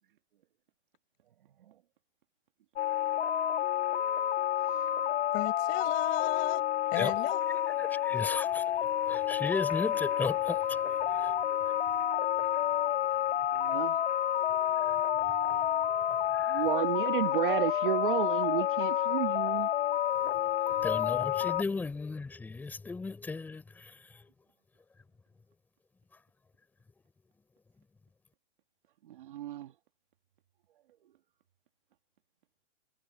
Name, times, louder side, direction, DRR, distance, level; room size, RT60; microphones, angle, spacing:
sound 1, 2.8-21.6, left 11 dB, 65° left, 2.4 m, -29 dB
voice 1, 5.3-6.6 6.9-7.8, left 23 dB, 20° left, 7.2 m, -35 dB
voice 2, 7.8-8.7 9.1-11.8 12.3-12.4 14.7-15.0 15.2-15.6 16.2-16.7 20.2-24.2, left 4 dB, 5° left, 4.2 m, -37 dB
voice 3, 13.6-14.0 16.5-19.7 29.1-29.7, right 12 dB, 45° right, 1.8 m, -32 dB
hypercardioid pair, 170°, 37 cm